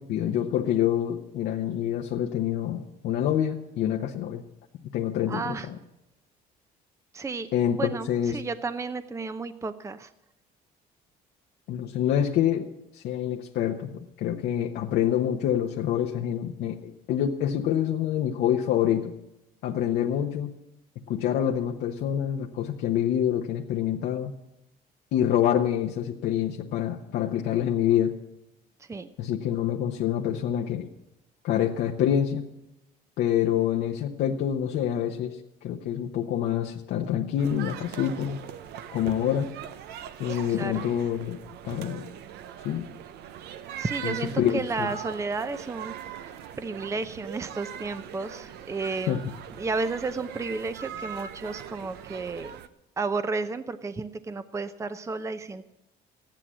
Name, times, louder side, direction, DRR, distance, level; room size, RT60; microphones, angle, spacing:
voice 1, 0.1-4.4 4.9-5.8 7.5-8.4 11.7-12.7 12.9-19.1 19.6-20.5 21.1-24.3 25.1-28.2 29.2-30.9 31.4-32.4 33.2-38.4 38.9-39.5 40.2-42.1 42.6-42.9 44.0-44.9 49.1-49.2, left 10 dB, 80° left, 1 dB, 1.1 m, -26 dB
voice 2, 5.3-5.7 7.1-10.1 28.8-29.1 40.3-40.9 43.8-45.9 46.6-49.2 49.6-52.5 53.0-55.6, right 4 dB, 15° right, 11 dB, 0.7 m, -32 dB
sound 1, 37.4-52.7, right 9 dB, 80° right, 0.9 m, -41 dB
14.0 x 10.5 x 7.6 m, 0.89 s
cardioid pair, 110°, 17 cm